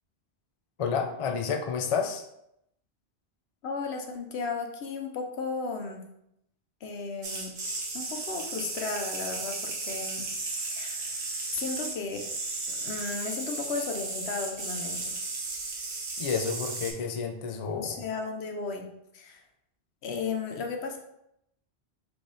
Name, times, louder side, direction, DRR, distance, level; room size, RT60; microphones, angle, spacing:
voice 1, 0.8-2.3 16.2-17.9, left 6 dB, 55° left, 4 dB, 0.4 m, -30 dB
voice 2, 3.6-6.0 6.8-7.5 7.9-11.2 11.5-12.2 12.7-15.1 17.6-18.9 19.1-19.4 20.0-21.0, left 4 dB, 75° left, 3 dB, 0.9 m, -35 dB
sound 1, 7.2-16.9, right 3 dB, 75° right, 1.2 m, -35 dB
3.4 x 3.4 x 3.9 m, 0.80 s
omnidirectional pair, 1.1 m